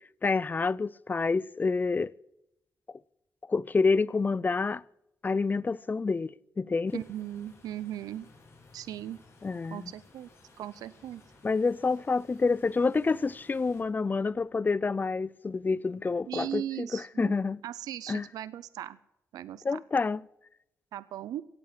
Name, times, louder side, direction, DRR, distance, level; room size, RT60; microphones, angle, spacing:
voice 1, 0.2-2.1 3.5-4.8 5.2-7.0 9.4-9.9 11.4-17.6 18.1-18.3 19.6-20.2, left 4 dB, 30° left, 0.5 m, -28 dB
sound 1, 6.9-13.8, left 3 dB, 45° left, 5.0 m, -57 dB
voice 2, 6.9-8.3 8.7-9.2 9.7-10.3 10.6-11.2 16.3-17.4 17.6-19.0 19.3-19.8 20.9-21.4, right 11 dB, 90° right, 0.6 m, -38 dB
17.0 x 8.5 x 7.5 m
cardioid pair, 75°, 6 cm